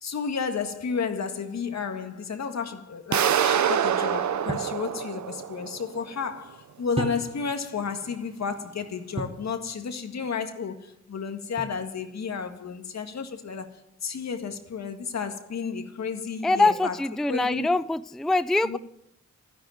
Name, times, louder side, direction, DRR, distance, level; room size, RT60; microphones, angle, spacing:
voice 1, 0.0-13.7 14.0-17.0 17.3-17.7 18.6-18.8, left 5 dB, 65° left, 1.9 m, -32 dB
sound 1, 3.1-6.0, right 9 dB, 75° right, 0.8 m, -25 dB
sound 2, 4.5-4.8 7.0-7.6 9.2-9.5 11.6-12.1, right 2 dB, 20° right, 1.7 m, -34 dB
voice 2, 16.4-18.8, left 2 dB, ahead, 0.4 m, -23 dB
12.5 x 10.0 x 9.5 m
cardioid pair, 65°, 29 cm